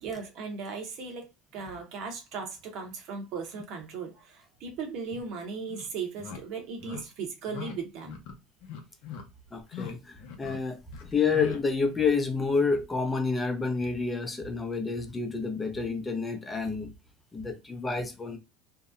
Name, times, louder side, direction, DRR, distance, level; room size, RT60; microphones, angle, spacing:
voice 1, 0.0-8.2, right 5 dB, 60° right, 0.8 m, -37 dB
sound 1, 5.1-5.2 5.7-5.9 6.2-6.4 6.8-7.0 7.5-7.7 8.0-8.3 8.6-9.2 9.6-9.9 10.2-10.6 10.9-11.6, left 7 dB, 75° left, 0.6 m, -40 dB
voice 2, 9.5-16.9 17.3-18.4, left 4 dB, 20° left, 0.5 m, -29 dB
2.7 x 2.0 x 2.3 m
supercardioid pair, 90°, 0 cm